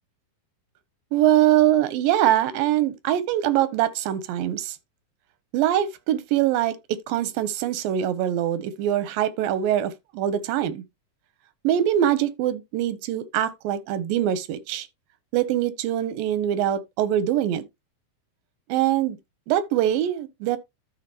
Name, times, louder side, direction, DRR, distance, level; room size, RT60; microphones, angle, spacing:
voice 1, 1.1-4.8 5.5-10.8 11.6-14.9 15.3-17.6 18.7-19.2 19.5-20.6, right 11 dB, 90° right, 2.5 m, -23 dB
13.0 x 4.4 x 2.8 m
omnidirectional pair, 4.0 m